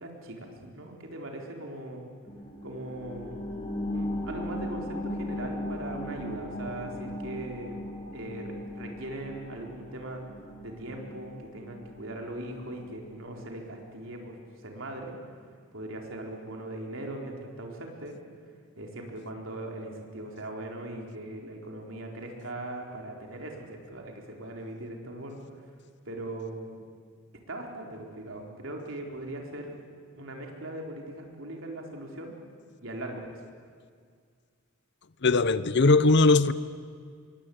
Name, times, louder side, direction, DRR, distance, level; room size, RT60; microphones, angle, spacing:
voice 1, 0.0-2.0 2.6-3.4 3.9-7.8 8.1-10.2 10.6-14.4 14.6-15.1 15.7-18.1 18.8-25.4 26.1-26.8 27.5-29.7 30.2-32.3 32.8-33.4, right 1 dB, 65° right, 4.3 m, -39 dB
sound 1, 2.3-13.4 13.8-13.9, left 1 dB, 25° left, 3.5 m, -38 dB
voice 2, 35.2-36.5, left 3 dB, 55° left, 0.8 m, -20 dB
26.0 x 22.5 x 8.7 m
head